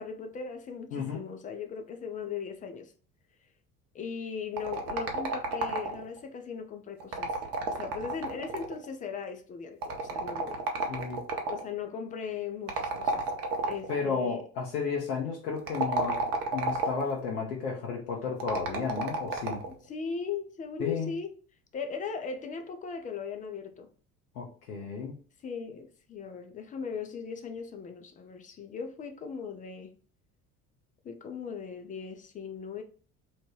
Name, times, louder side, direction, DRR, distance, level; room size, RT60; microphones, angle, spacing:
voice 1, 0.0-2.9 3.9-7.4 7.7-10.6 11.4-13.2 13.6-14.4 19.7-21.3 21.7-23.9 25.4-29.9 31.0-32.8, left 6 dB, 20° left, 0.3 m, -38 dB
voice 2, 0.9-1.3 10.9-11.2 13.9-16.2 16.5-19.6 20.8-21.1 24.3-25.2, left 5 dB, 80° left, 0.7 m, -33 dB
sound 1, 4.6-6.2 7.0-8.9 9.8-11.7 12.7-14.0 15.6-17.1 18.4-19.7, right 3 dB, 50° right, 0.8 m, -31 dB
2.9 x 2.1 x 3.0 m
figure-of-eight pair, 60°, 45 cm